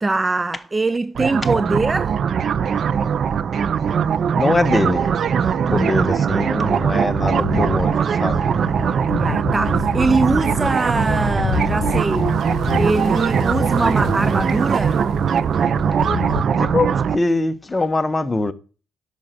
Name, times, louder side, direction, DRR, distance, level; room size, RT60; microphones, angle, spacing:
voice 1, 0.0-2.2 7.5-7.6 8.1-8.3 8.7-12.3 12.8-15.0, right 3 dB, 20° right, 0.5 m, -22 dB
sound 1, 1.1-17.2, right 7 dB, 55° right, 0.7 m, -20 dB
voice 2, 4.3-5.0 5.7-8.5 16.5-18.5, left 2 dB, 20° left, 1.3 m, -22 dB
sound 2, 6.7-16.4, left 8 dB, 65° left, 0.6 m, -29 dB
10.5 x 6.5 x 7.6 m
cardioid pair, 90°, 0 cm